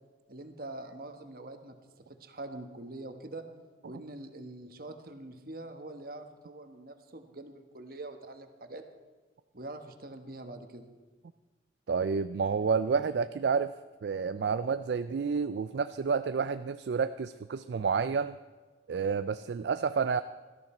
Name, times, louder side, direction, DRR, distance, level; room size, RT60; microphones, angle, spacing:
voice 1, 0.3-1.7 2.1-3.4 3.8-8.8 9.5-10.9, right 2 dB, 50° right, 7 dB, 1.3 m, -44 dB
voice 2, 11.9-13.7 14.0-18.4 18.9-20.2, right 5 dB, 65° right, 12 dB, 0.4 m, -29 dB
17.5 x 13.5 x 4.4 m, 1.3 s
head